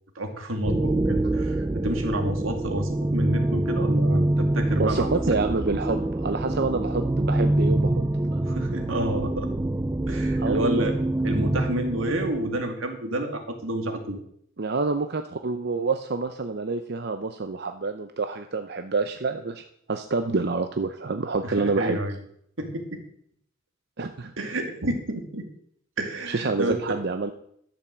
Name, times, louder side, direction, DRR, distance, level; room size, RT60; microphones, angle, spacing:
voice 1, 0.1-5.1 8.4-9.5 10.1-11.0 11.2-14.2 21.4-22.2 22.6-23.0 24.4-25.5 26.0-26.8, right 1 dB, 85° right, 4 dB, 2.3 m, -29 dB
sound 1, 0.6-12.6, right 1 dB, 15° right, 0.4 m, -25 dB
voice 2, 4.8-8.0 8.3-8.4 10.4-10.9 14.6-19.6 19.9-22.0 24.0-24.3 26.3-27.3, right 3 dB, 55° right, 7 dB, 0.7 m, -27 dB
12.0 x 7.0 x 7.3 m, 0.68 s
head